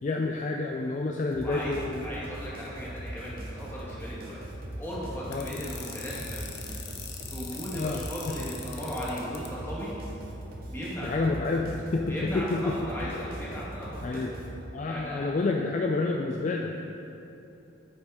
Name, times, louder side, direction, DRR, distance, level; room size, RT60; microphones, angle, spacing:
voice 1, 0.0-2.1 5.3-5.5 7.7-8.0 11.0-12.6 13.0-13.1 14.0-14.3 14.7-16.7, left 3 dB, 40° left, 1 dB, 0.3 m, -29 dB
sound 1, 1.3-14.6, right 1 dB, 50° right, 0.9 m, -40 dB
voice 2, 1.4-4.4 4.8-6.5 7.3-9.9 10.7-11.4 12.1-14.2 14.9-15.3, equal, 10° left, -8 dB, 1.8 m, -37 dB
sound 2, 5.3-9.5, left 8 dB, 55° left, 0.7 m, -41 dB
8.4 x 5.2 x 4.8 m, 2.9 s
head